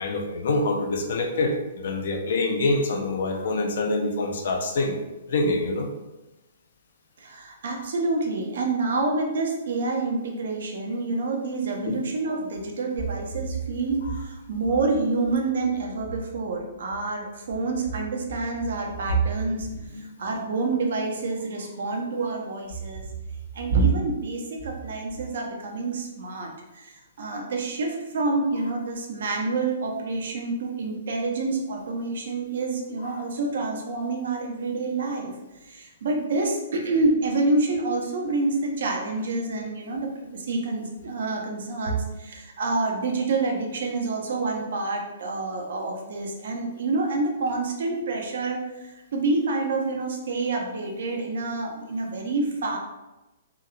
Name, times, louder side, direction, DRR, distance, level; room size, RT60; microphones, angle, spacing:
voice 1, 0.0-5.0 5.3-5.9 7.7-7.8 11.8-12.0 14.0-14.2 19.9-20.1 33.0-33.2, left 2 dB, 55° left, 3 dB, 0.4 m, -26 dB
voice 2, 7.2-19.7 19.9-23.1 23.5-35.3 35.7-52.8, right 3 dB, 55° right, 1 dB, 0.5 m, -27 dB
2.8 x 2.6 x 2.4 m, 1.0 s
figure-of-eight pair, 115°, 0 cm